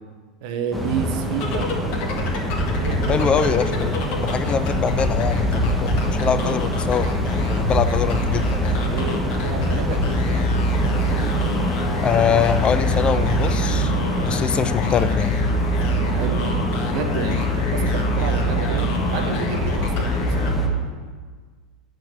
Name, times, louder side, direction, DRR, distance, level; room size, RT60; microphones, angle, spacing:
voice 1, 0.4-1.7 2.8-3.4 8.8-10.8 16.1-20.4, right 6 dB, 55° right, 6 dB, 1.2 m, -30 dB
sound 1, 0.7-20.7, equal, ahead, 1.6 m, -26 dB
sound 2, 1.3-21.0, left 1 dB, 45° left, 1.7 m, -25 dB
voice 2, 3.1-7.1 7.5-8.8 12.0-13.9 14.3-15.4, left 7 dB, 25° left, 11 dB, 0.5 m, -23 dB
8.3 x 6.4 x 8.2 m, 1.5 s
figure-of-eight pair, 85°, 4 cm